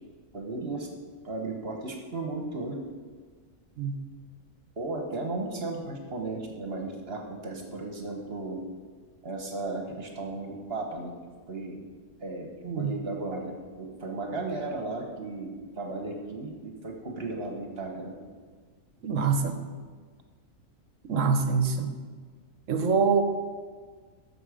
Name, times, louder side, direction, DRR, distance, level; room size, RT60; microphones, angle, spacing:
voice 1, 0.3-0.9 1.2-2.8 4.8-8.6 9.2-11.1 11.5-11.7 12.2-12.5 12.7-13.5 13.8-15.5 15.8-18.1, right 2 dB, 45° right, 2 dB, 1.3 m, -35 dB
voice 2, 19.0-19.6 21.1-21.9 22.7-23.2, right 5 dB, 65° right, 7 dB, 1.2 m, -25 dB
11.0 x 7.0 x 5.0 m, 1.5 s
omnidirectional pair, 1.5 m